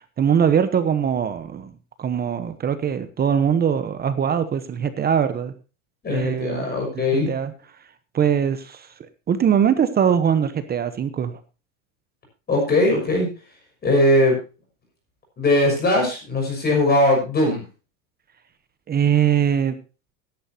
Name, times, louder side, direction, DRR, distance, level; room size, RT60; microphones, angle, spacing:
voice 1, 0.2-1.7 2.0-5.5 6.1-6.7 6.9-7.5 8.1-8.9 9.3-11.4 18.9-19.8, right 8 dB, 25° right, 11 dB, 0.9 m, -21 dB
voice 2, 6.0-7.3 12.5-13.3 13.8-14.4 15.4-17.6, left 1 dB, 25° left, 1 dB, 6.0 m, -19 dB
16.5 x 10.5 x 2.8 m, 0.32 s
supercardioid pair, 135°, 40 cm